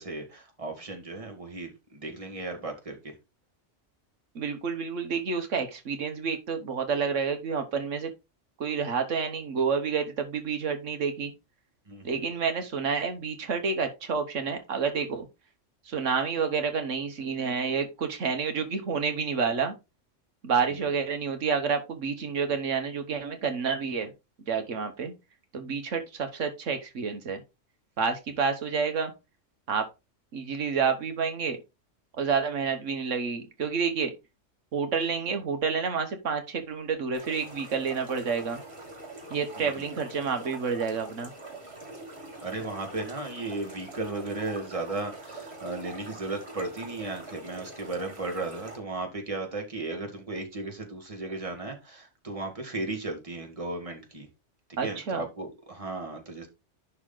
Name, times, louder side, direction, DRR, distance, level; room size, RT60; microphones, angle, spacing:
voice 1, 0.0-3.1 11.9-12.3 20.7-20.8 39.5-39.9 42.4-54.3 54.7-56.5, right 2 dB, 30° right, 1.8 m, -35 dB
voice 2, 4.3-8.1 8.6-11.3 12.0-15.3 15.9-19.7 20.4-24.1 24.5-25.1 25.5-27.4 28.0-29.1 29.7-29.9 30.3-31.6 32.2-34.1 34.7-38.6 39.3-41.3 54.8-55.2, right 5 dB, 80° right, 1.5 m, -29 dB
sound 1, 37.1-48.8, right 1 dB, 60° right, 2.7 m, -44 dB
11.0 x 3.7 x 3.8 m
omnidirectional pair, 1.3 m